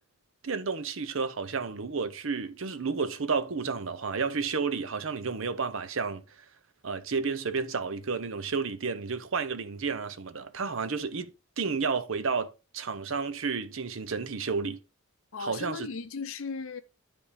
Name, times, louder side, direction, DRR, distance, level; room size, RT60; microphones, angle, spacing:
voice 1, 0.4-6.2 6.8-14.8 15.4-15.9, right 5 dB, 60° right, 0.7 m, -31 dB
voice 2, 15.3-16.8, left 4 dB, 60° left, 0.6 m, -36 dB
9.7 x 3.6 x 4.9 m
head